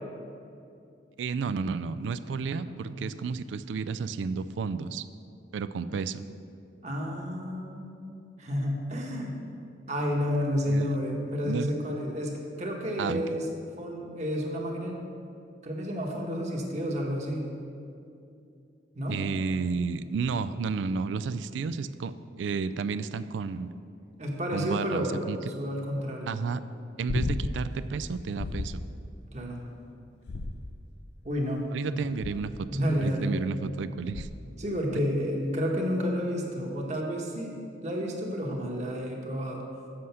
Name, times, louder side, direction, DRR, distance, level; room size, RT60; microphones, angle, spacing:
voice 1, 1.2-5.0 5.5-6.2 10.6-10.9 11.4-11.7 13.0-13.2 19.1-23.7 24.5-25.4 26.3-26.6 27.0-28.8 31.7-32.5 33.0-34.3, right 5 dB, 85° right, 13 dB, 0.3 m, -32 dB
voice 2, 2.6-3.1 6.8-7.9 8.4-9.4 9.9-13.5 13.8-14.9 15.6-17.5 18.9-19.2 24.2-25.2 25.5-26.4 29.3-29.6 31.2-31.6 31.9-32.0 32.7-33.3 33.9-34.0 34.6-39.6, equal, 40° right, 0 dB, 1.1 m, -30 dB
sound 1, 27.1-27.7 28.4-28.9 30.2-31.0 32.2-32.7 34.1-34.6 36.9-37.0, left 2 dB, 65° left, 0.5 m, -33 dB
7.6 x 6.4 x 5.7 m, 2.6 s
head